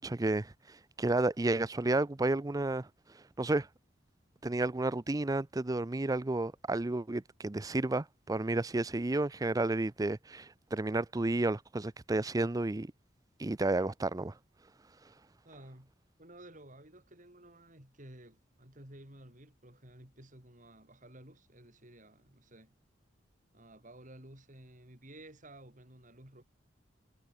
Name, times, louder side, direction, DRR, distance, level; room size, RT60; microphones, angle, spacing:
voice 1, 0.0-2.9 3.4-3.7 4.4-12.9 13.4-14.3, right 2 dB, 20° right, 0.5 m, -31 dB
voice 2, 15.4-15.9 16.2-22.7 23.5-26.4, right 1 dB, 45° right, 7.2 m, -54 dB
head